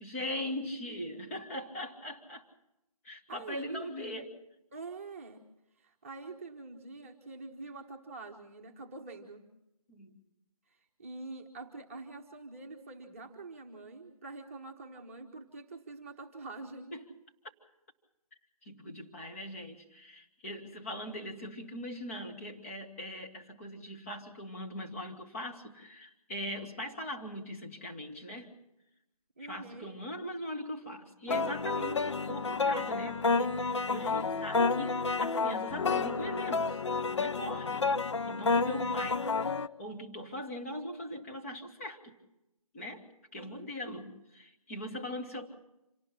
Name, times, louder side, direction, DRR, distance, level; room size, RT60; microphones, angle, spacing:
voice 1, 0.0-2.5 3.0-4.3 9.9-10.2 16.9-17.1 18.6-28.6 29.4-36.8 37.2-37.9 38.3-39.2 39.6-42.1 42.7-43.0 43.3-45.5, left 1 dB, 20° left, 1 dB, 1.7 m, -40 dB
voice 2, 3.3-3.9 4.7-5.5 5.8-9.5 10.7-16.9 29.4-29.9 43.3-43.7, right 3 dB, 20° right, 2 dB, 1.2 m, -45 dB
sound 1, 31.3-39.7, left 4 dB, 50° left, 0.7 m, -30 dB
26.5 x 18.5 x 5.7 m, 0.88 s
figure-of-eight pair, 160°, 19 cm